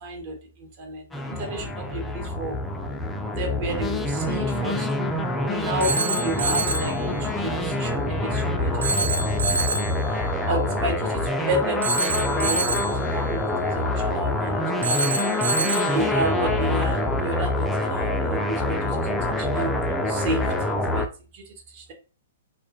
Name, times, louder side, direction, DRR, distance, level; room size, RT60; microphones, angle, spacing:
voice 1, 0.0-2.6 3.4-4.9 5.5-6.9 7.2-9.1 10.1-15.4 15.8-18.9 19.4-19.7 20.1-21.0 21.3-21.4 21.7-21.9, right 2 dB, 40° right, 3 dB, 0.8 m, -31 dB
sound 1, 1.1-21.1, left 1 dB, 10° left, 0.3 m, -26 dB
Telephone, 5.8-7.0 8.8-10.0 11.8-13.0 14.8-16.0, right 3 dB, 80° right, 0.3 m, -26 dB
2.2 x 2.1 x 2.7 m, 0.36 s
figure-of-eight pair, 120°, 0 cm